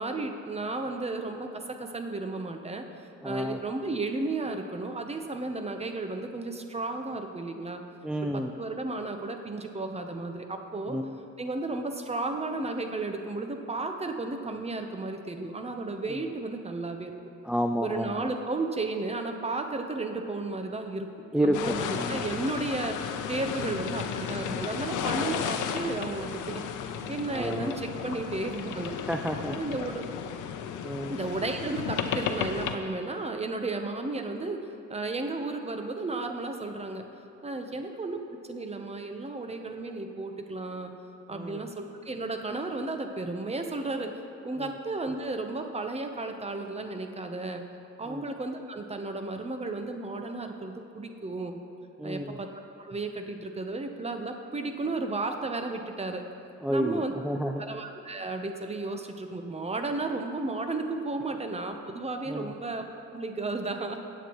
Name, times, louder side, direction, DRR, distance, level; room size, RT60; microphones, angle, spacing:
voice 1, 0.0-2.8 3.2-7.8 8.3-11.0 11.4-17.1 17.8-21.1 21.4-26.6 27.1-28.9 29.5-30.0 31.1-34.6 34.9-37.0 37.4-40.9 41.3-44.1 44.4-47.6 48.0-51.6 52.0-52.5 52.8-56.2 56.7-57.2 57.6-62.8 63.1-64.1, right 3 dB, 20° right, 5 dB, 0.9 m, -33 dB
voice 2, 3.2-3.6 8.0-8.5 10.9-11.2 17.5-18.1 21.3-22.2 25.0-25.3 27.3-27.8 29.1-29.6 30.8-31.1 41.3-41.7 44.6-44.7 48.1-48.2 52.0-52.4 56.6-57.6 62.3-62.5, equal, 5° right, 4 dB, 0.3 m, -30 dB
sound 1, 21.5-32.8, left 8 dB, 85° left, 0.7 m, -34 dB
15.5 x 8.1 x 3.1 m, 2.7 s
cardioid pair, 90°, 30 cm